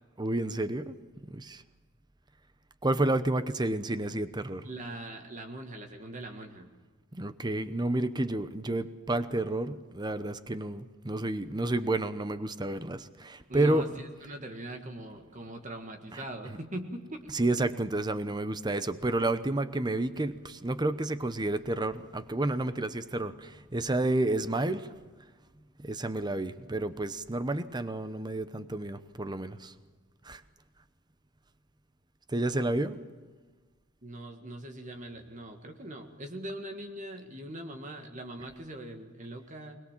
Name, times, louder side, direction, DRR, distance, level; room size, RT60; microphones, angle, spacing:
voice 1, 0.2-1.0 1.2-1.6 2.8-4.7 7.1-13.8 16.1-16.2 17.3-24.9 25.8-29.7 30.2-30.4 32.3-33.0, right 2 dB, 20° right, 12 dB, 0.9 m, -30 dB
voice 2, 4.6-6.7 13.5-17.2 34.0-39.8, right 1 dB, 40° right, 4 dB, 1.7 m, -41 dB
21.5 x 21.5 x 7.4 m, 1.4 s
head